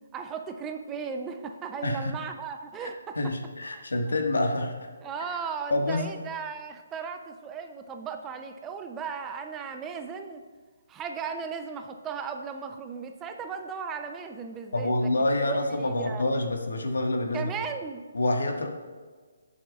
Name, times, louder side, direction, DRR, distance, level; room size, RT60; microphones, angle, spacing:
voice 1, 0.1-3.3 3.7-3.8 5.0-10.4 10.9-15.1 15.4-16.2 17.3-18.0, right 6 dB, 15° right, 6 dB, 0.5 m, -36 dB
voice 2, 1.8-2.1 2.8-2.9 3.2-4.9 5.7-6.1 14.7-17.5 18.1-18.7, left 2 dB, 85° left, 3 dB, 1.6 m, -27 dB
19.5 x 7.2 x 2.4 m, 1.5 s
hypercardioid pair, 160°, 0 cm